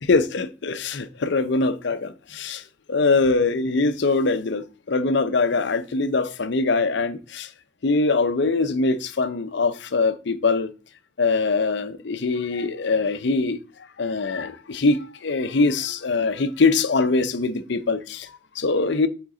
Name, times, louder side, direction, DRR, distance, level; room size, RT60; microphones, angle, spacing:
voice 1, 0.0-7.5 7.8-10.7 11.2-19.1, left 3 dB, 60° left, 0.6 m, -23 dB
9.0 x 3.8 x 3.8 m
head